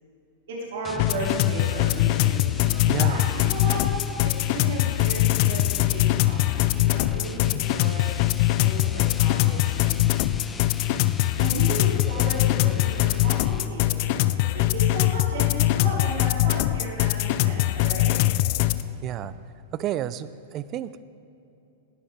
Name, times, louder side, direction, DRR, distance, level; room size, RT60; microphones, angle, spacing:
voice 1, 0.5-3.9 4.2-8.1 8.5-10.1 11.4-18.2, right 2 dB, 65° right, -4 dB, 3.2 m, -34 dB
sound 1, 0.8-13.9, left 5 dB, 20° left, 0.7 m, -39 dB
sound 2, 1.0-18.8, left 16 dB, 55° left, 0.5 m, -22 dB
voice 2, 2.9-3.2 19.0-19.3 19.7-20.9, right 12 dB, 40° right, 16 dB, 0.5 m, -30 dB
19.0 x 13.0 x 3.7 m, 2.8 s
hypercardioid pair, 105°, 0 cm